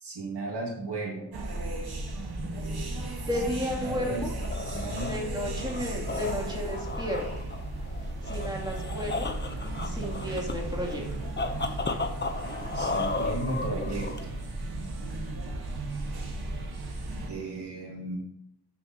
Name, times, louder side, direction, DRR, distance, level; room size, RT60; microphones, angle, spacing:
voice 1, 0.0-1.3 3.8-4.3 4.7-5.1 12.7-14.3 17.3-18.2, right 2 dB, 90° right, -1 dB, 2.1 m, -35 dB
sound 1, 1.3-17.3, right 2 dB, 70° right, 1.5 m, -35 dB
voice 2, 3.2-4.3 5.0-7.4 8.2-9.3 9.8-11.1, equal, 10° right, -3 dB, 2.8 m, -33 dB
sound 2, 4.2-14.5, left 3 dB, 25° left, 0.8 m, -35 dB
12.5 x 6.6 x 2.9 m, 0.78 s
wide cardioid pair, 70°, 40 cm